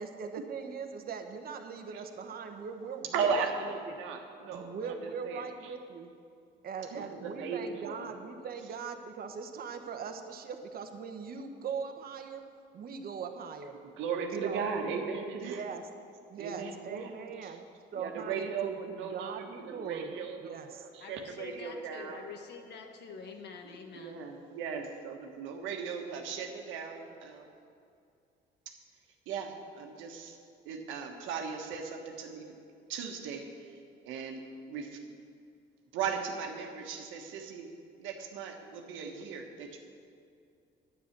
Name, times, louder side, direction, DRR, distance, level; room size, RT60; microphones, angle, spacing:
voice 1, 0.0-3.5 3.8-3.9 4.5-6.1 6.6-12.4 12.7-13.8 14.4-14.7 15.4-15.8 16.3-17.6 17.9-20.1 20.4-20.9, right 6 dB, 50° right, 6 dB, 1.2 m, -40 dB
voice 2, 3.1-4.9 5.2-5.4 6.9-8.1 14.0-15.6 16.4-17.1 17.4-17.5 17.9-22.2 23.6-27.4 29.3-30.4 30.6-32.5 32.9-33.4 34.0-34.4 34.7-35.0 35.9-37.7 38.0-39.8, right 6 dB, 80° right, 3 dB, 1.5 m, -37 dB
voice 3, 21.0-24.2, left 4 dB, 60° left, 3 dB, 1.5 m, -46 dB
10.0 x 9.3 x 6.0 m, 2.4 s
cardioid pair, 90°, 19 cm